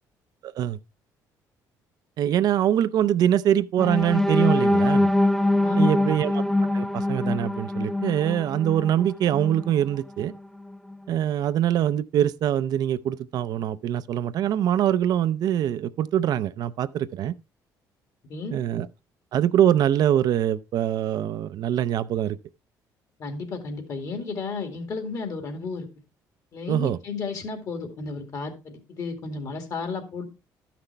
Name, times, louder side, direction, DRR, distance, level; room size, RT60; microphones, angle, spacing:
voice 1, 0.4-0.8 2.2-5.1 5.8-6.4 6.7-10.3 11.1-17.3 18.5-18.9 19.3-22.4 26.7-27.0, right 10 dB, 60° right, 0.5 m, -23 dB
sound 1, 3.8-9.7 10.2-10.4 10.7-10.9, left 1 dB, 5° left, 0.4 m, -23 dB
voice 2, 5.6-6.2 18.2-18.6 23.2-25.9 26.5-30.2, left 4 dB, 50° left, 2.2 m, -33 dB
12.5 x 5.9 x 3.3 m
cardioid pair, 115°, 7 cm